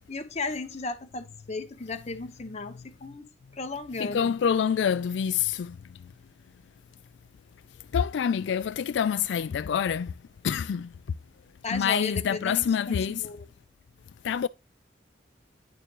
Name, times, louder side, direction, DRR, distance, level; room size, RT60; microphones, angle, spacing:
voice 1, 0.1-4.3 11.6-13.5, left 3 dB, 40° left, 1.1 m, -35 dB
voice 2, 4.0-5.8 7.9-10.1 10.4-10.9 11.7-13.2 14.2-14.5, left 7 dB, 80° left, 0.3 m, -26 dB
10.0 x 6.7 x 3.0 m
head